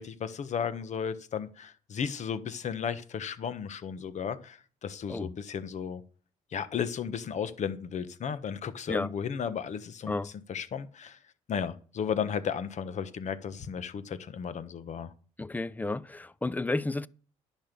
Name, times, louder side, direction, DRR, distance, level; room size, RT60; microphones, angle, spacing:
voice 1, 0.0-6.0 6.5-10.1 10.5-11.2 11.5-15.1, left 7 dB, 55° left, 1.3 m, -34 dB
voice 2, 15.4-17.1, left 2 dB, 10° left, 0.6 m, -32 dB
10.5 x 6.5 x 6.9 m
supercardioid pair, 70°, 15 cm